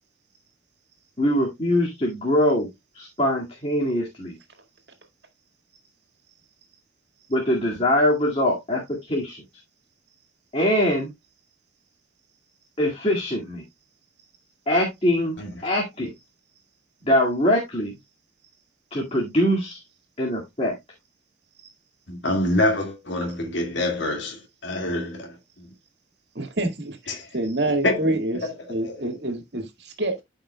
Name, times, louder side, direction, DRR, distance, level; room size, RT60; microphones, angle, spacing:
voice 1, 1.2-2.7 2.9-4.4 7.3-9.4 10.5-11.1 12.8-13.6 14.7-15.4 15.6-16.1 17.0-17.9 18.9-19.8 20.2-20.7, left 1 dB, 30° left, 2.1 m, -23 dB
voice 2, 22.1-25.7 27.1-27.3 27.8-28.0 28.3-28.5 28.8-29.0, left 1 dB, 70° left, 2.0 m, -26 dB
voice 3, 26.4-30.2, right 1 dB, 55° right, 1.9 m, -27 dB
13.0 x 5.4 x 2.2 m
head